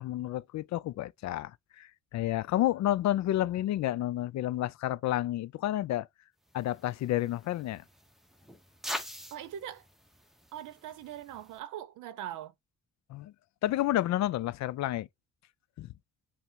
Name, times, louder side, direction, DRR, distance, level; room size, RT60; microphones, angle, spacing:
voice 1, 0.0-6.1 6.5-7.8 13.1-13.3 13.6-15.1 15.8-15.9, left 14 dB, 65° left, 0.5 m, -30 dB
sound 1, 6.5-11.6, equal, ahead, 0.7 m, -44 dB
voice 2, 9.3-9.9 10.5-12.5, right 11 dB, 85° right, 0.7 m, -41 dB
5.7 x 2.1 x 4.4 m
cardioid pair, 90°, 30 cm